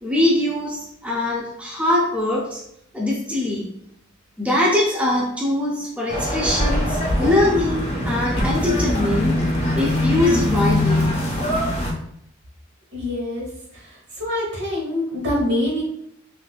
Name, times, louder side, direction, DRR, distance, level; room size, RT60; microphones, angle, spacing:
voice 1, 0.0-2.6 2.9-3.7 4.4-9.4 9.8-11.2, left 1 dB, 5° right, -4 dB, 0.4 m, -22 dB
sound 1, 6.1-11.9, left 1 dB, 30° left, 0.7 m, -22 dB
voice 2, 12.9-13.5 13.7-13.8 14.2-15.8, left 1 dB, 60° right, -3 dB, 1.2 m, -24 dB
3.7 x 2.4 x 2.4 m, 0.72 s
head